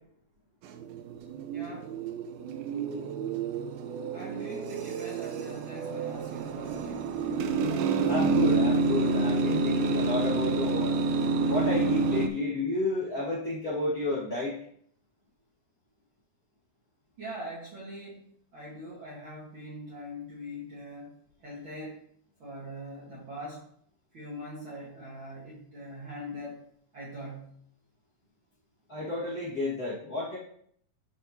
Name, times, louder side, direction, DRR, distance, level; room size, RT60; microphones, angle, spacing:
sound 1, 0.6-12.3, right 4 dB, 85° right, 2.6 m, -28 dB
voice 1, 1.5-1.9 4.1-7.1 17.2-18.2 18.5-21.1 21.4-22.0 22.4-23.6 24.1-26.6 26.9-27.5, equal, 45° right, -6 dB, 1.7 m, -42 dB
voice 2, 8.0-10.9 11.5-14.5 28.9-30.4, left 2 dB, 35° left, -9 dB, 1.7 m, -31 dB
11.0 x 5.0 x 2.9 m, 0.63 s
omnidirectional pair, 4.1 m